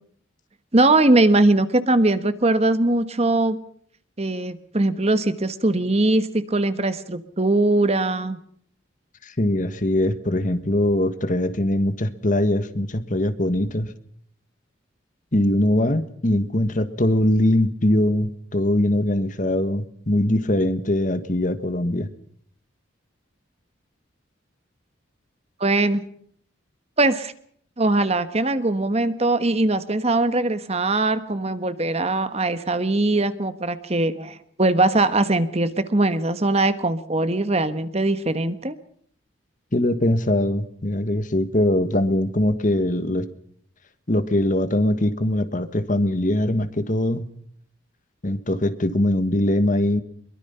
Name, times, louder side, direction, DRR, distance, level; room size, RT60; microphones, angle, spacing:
voice 1, 0.7-3.6 4.2-8.4 25.6-26.0 27.0-27.3 27.8-38.8, right 2 dB, 30° right, 12 dB, 1.2 m, -21 dB
voice 2, 9.2-13.9 15.3-22.1 39.7-43.3 44.1-47.3 48.2-50.0, left 1 dB, 40° left, 12 dB, 1.4 m, -22 dB
23.0 x 22.0 x 5.6 m, 0.62 s
head